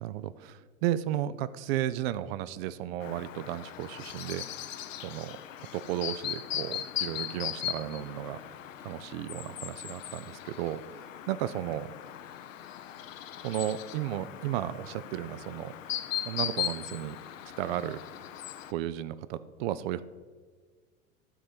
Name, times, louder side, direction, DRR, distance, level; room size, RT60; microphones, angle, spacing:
voice 1, 0.0-5.4 5.7-8.4 8.8-10.8 11.3-11.9 13.4-15.7 16.3-17.2 17.6-18.0 18.7-20.0, right 12 dB, 50° right, 15 dB, 0.4 m, -34 dB
Chirp tweet, 3.0-18.7, left 11 dB, 70° left, 0.6 m, -39 dB
12.0 x 4.2 x 5.1 m, 1.5 s
figure-of-eight pair, 85°, 41 cm